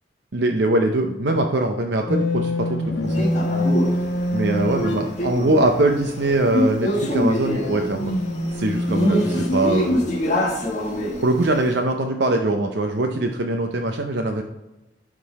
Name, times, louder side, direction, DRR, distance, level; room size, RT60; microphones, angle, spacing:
voice 1, 0.3-3.2 4.3-8.1 8.5-10.1 11.2-14.4, right 2 dB, 70° right, 3 dB, 0.6 m, -22 dB
sound 1, 2.1-5.2 7.4-9.5, left 1 dB, 85° left, 1.2 m, -24 dB
Male speech man speaking, 3.1-11.7, left 1 dB, 40° left, 1.5 m, -25 dB
11.0 x 3.7 x 4.1 m, 0.99 s
head